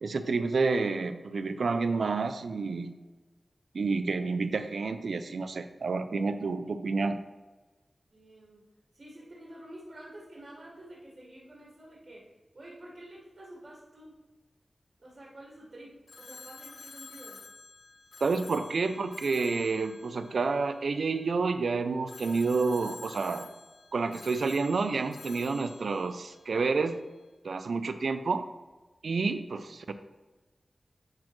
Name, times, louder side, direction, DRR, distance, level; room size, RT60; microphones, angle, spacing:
voice 1, 0.0-2.9 3.7-7.2 18.2-23.5 23.9-27.0 27.4-28.5 29.0-29.9, right 4 dB, 90° right, 10 dB, 0.4 m, -29 dB
voice 2, 8.1-8.7 8.9-12.3 12.5-14.2 15.0-17.4, right 1 dB, 60° right, -5 dB, 2.0 m, -49 dB
Telephone, 16.1-21.3 22.1-26.9, left 4 dB, 85° left, 0.5 m, -50 dB
10.5 x 4.2 x 3.1 m, 1.2 s
wide cardioid pair, 70°, 0 cm